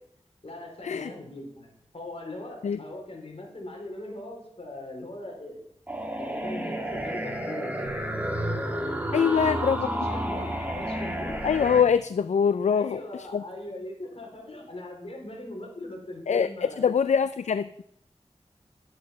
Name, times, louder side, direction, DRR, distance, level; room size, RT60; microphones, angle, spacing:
voice 1, 0.4-5.6 6.2-8.0 8.3-11.4 12.7-16.8, left 1 dB, 55° left, 1 dB, 3.9 m, -40 dB
sound 1, 5.9-11.8, right 1 dB, 15° right, 1.7 m, -31 dB
voice 2, 9.1-9.9 11.4-13.0 13.3-13.4 16.3-16.5 16.8-17.8, left 7 dB, 75° left, 13 dB, 0.4 m, -23 dB
11.5 x 8.5 x 5.6 m, 0.72 s
wide cardioid pair, 75°, 12 cm